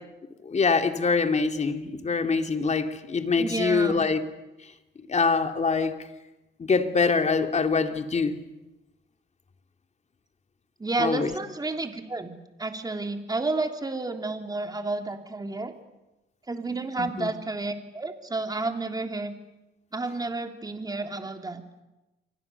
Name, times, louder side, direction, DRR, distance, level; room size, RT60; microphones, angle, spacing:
voice 1, 0.4-4.2 5.1-5.9 6.6-8.4 11.0-11.3 17.0-17.3, left 4 dB, 35° left, 6 dB, 2.7 m, -24 dB
voice 2, 3.4-4.0 10.8-12.3 12.6-15.7 16.5-19.3 19.9-21.6, right 3 dB, 20° right, 5 dB, 3.3 m, -31 dB
29.0 x 24.5 x 7.0 m, 1.0 s
cardioid pair, 90°, 20 cm